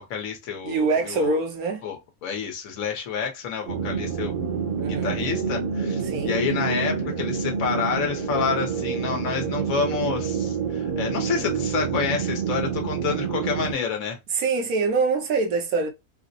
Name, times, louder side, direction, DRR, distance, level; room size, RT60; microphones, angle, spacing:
voice 1, 0.0-1.4 1.8-4.4 4.9-14.2, left 6 dB, 65° left, 1.3 m, -29 dB
voice 2, 0.6-1.8 4.7-5.2 6.0-6.4 14.3-15.9, right 4 dB, 75° right, 1.3 m, -24 dB
sound 1, 3.7-13.7, right 6 dB, 55° right, 1.1 m, -28 dB
3.9 x 2.1 x 2.6 m
omnidirectional pair, 1.6 m